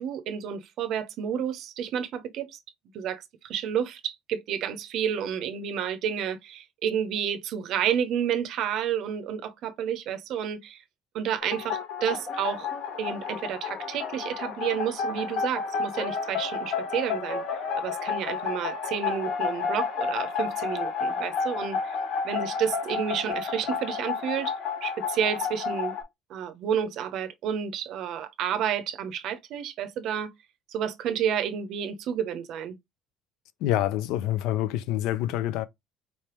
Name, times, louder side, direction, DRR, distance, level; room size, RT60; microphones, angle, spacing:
voice 1, 0.0-2.6 2.9-10.8 11.1-12.7 13.0-17.4 17.7-22.0 22.2-24.5 24.8-25.9 26.3-30.3 30.7-32.8, right 8 dB, 50° right, 0.6 m, -30 dB
sound 1, 11.4-26.0, left 5 dB, 55° left, 0.9 m, -31 dB
voice 2, 33.6-35.7, left 13 dB, 70° left, 0.4 m, -26 dB
4.1 x 3.3 x 2.9 m
cardioid pair, 165°, 0 cm